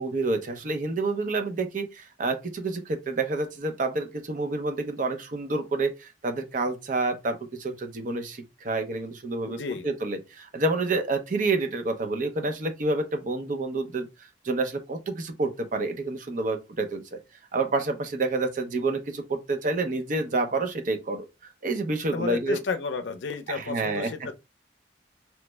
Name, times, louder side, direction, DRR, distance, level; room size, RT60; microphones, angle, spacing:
voice 1, 0.0-17.2 17.5-21.3 21.6-22.6 23.5-24.3, right 3 dB, 45° right, 0.6 m, -28 dB
voice 2, 9.5-9.9 22.1-24.3, left 4 dB, 90° left, 0.5 m, -32 dB
3.1 x 2.0 x 3.2 m
head